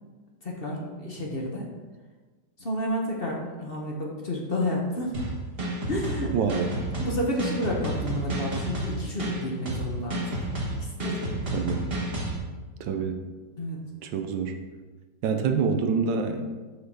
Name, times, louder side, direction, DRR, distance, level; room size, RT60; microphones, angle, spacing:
voice 1, 0.4-1.7 2.6-5.2 5.9-6.7 7.0-10.4 10.8-11.4 13.6-13.8, left 1 dB, 35° left, -1 dB, 1.0 m, -31 dB
sound 1, 5.1-12.4, right 1 dB, 35° right, 1.5 m, -31 dB
voice 2, 6.3-6.7 11.5-11.9 12.8-13.2 14.1-14.5 15.2-16.4, right 5 dB, 75° right, 7 dB, 1.3 m, -26 dB
7.0 x 4.8 x 6.1 m, 1.3 s
omnidirectional pair, 2.1 m